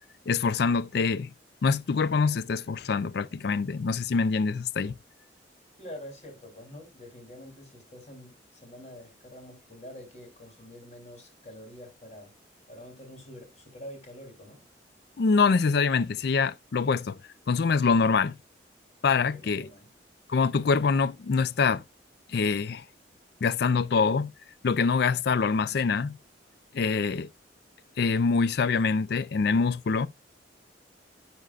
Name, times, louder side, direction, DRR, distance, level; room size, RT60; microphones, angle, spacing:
voice 1, 0.3-1.3 1.6-5.0 15.2-17.2 17.5-18.4 19.0-19.7 20.3-21.8 22.3-22.8 23.4-24.3 24.6-26.2 26.7-27.3 28.0-30.1, left 5 dB, 60° left, 0.4 m, -25 dB
voice 2, 5.8-12.3 12.7-14.6 19.1-19.9, left 1 dB, 40° left, 3.3 m, -46 dB
10.5 x 4.4 x 2.4 m
head